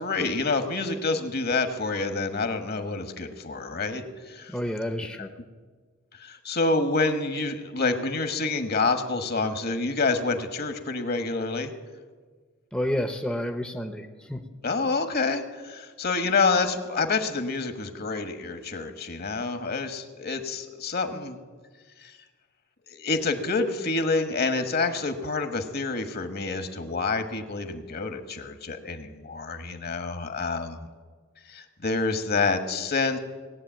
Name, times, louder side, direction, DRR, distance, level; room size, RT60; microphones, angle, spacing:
voice 1, 0.0-4.5 5.2-5.3 6.2-11.7 14.6-21.4 22.0-22.2 22.9-30.9 31.5-33.2, left 3 dB, 50° left, 8 dB, 1.3 m, -28 dB
voice 2, 4.5-5.3 12.7-14.4, left 1 dB, 5° left, 5 dB, 0.7 m, -30 dB
18.5 x 8.0 x 9.1 m, 1.5 s
head